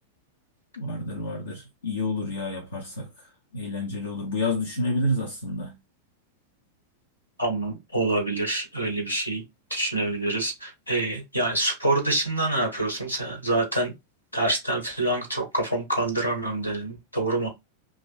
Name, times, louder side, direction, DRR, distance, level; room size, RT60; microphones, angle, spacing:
voice 1, 0.8-5.8, left 1 dB, 70° left, 0.7 m, -29 dB
voice 2, 7.4-9.4 9.7-13.9 14.3-17.5, right 2 dB, 85° left, 1.2 m, -26 dB
2.9 x 2.5 x 4.0 m
figure-of-eight pair, 90°, 0 cm